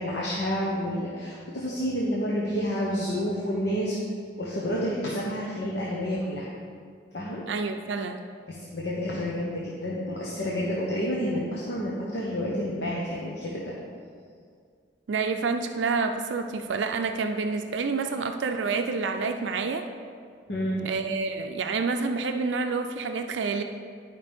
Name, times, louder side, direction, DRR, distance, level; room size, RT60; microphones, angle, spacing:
voice 1, 0.0-4.0 4.4-6.5 7.1-7.4 8.5-13.7 20.5-20.9, equal, 70° left, -5 dB, 1.1 m, -29 dB
voice 2, 7.5-8.2 15.1-19.9 20.8-23.6, right 4 dB, 85° right, 6 dB, 0.4 m, -28 dB
11.5 x 5.2 x 3.6 m, 2.1 s
head